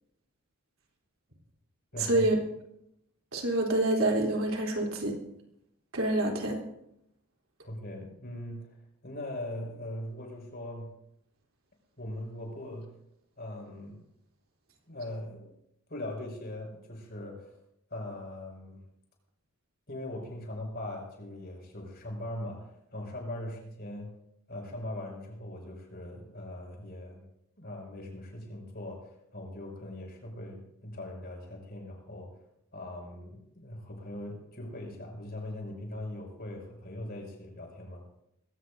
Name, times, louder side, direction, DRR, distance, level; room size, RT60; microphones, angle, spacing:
voice 1, 1.9-2.3 7.6-8.8 9.0-10.9 12.0-12.9 13.4-14.0 14.9-15.5 15.9-17.5 17.9-18.8 19.9-24.1 24.5-27.2 27.6-32.3 32.7-38.0, left 1 dB, 45° left, 1 dB, 6.1 m, -40 dB
voice 2, 3.3-5.2 5.9-6.6, right 1 dB, 70° right, 0 dB, 3.4 m, -27 dB
22.0 x 18.0 x 2.7 m, 0.78 s
head